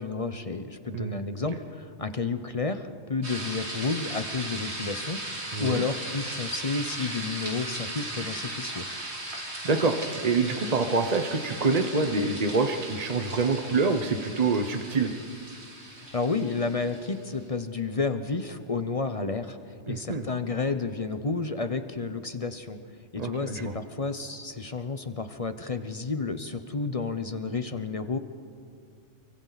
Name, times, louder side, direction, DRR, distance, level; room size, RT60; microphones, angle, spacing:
voice 1, 0.0-8.9 16.1-19.6 19.9-22.8 23.1-28.2, left 4 dB, 35° left, 9 dB, 0.7 m, -31 dB
sound 1, 3.2-17.3, right 1 dB, 55° right, 3.2 m, -37 dB
voice 2, 5.5-5.8 9.6-15.1 19.9-20.2 23.2-23.7, right 3 dB, 35° right, 6 dB, 1.0 m, -26 dB
29.0 x 23.5 x 4.1 m, 2.4 s
omnidirectional pair, 1.3 m